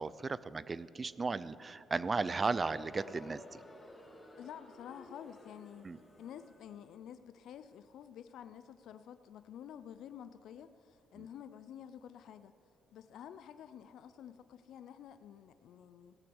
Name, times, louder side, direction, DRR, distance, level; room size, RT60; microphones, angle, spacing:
voice 1, 0.0-3.6 5.8-6.0 11.2-11.3, right 4 dB, 30° right, 17 dB, 0.4 m, -35 dB
Crowd, 1.8-6.8, left 1 dB, 15° left, 2.4 m, -54 dB
voice 2, 4.4-5.9 6.2-12.6 12.9-16.1, left 9 dB, 75° left, 11 dB, 0.4 m, -50 dB
16.5 x 6.0 x 7.9 m, 3.0 s
cardioid pair, 90°, 0 cm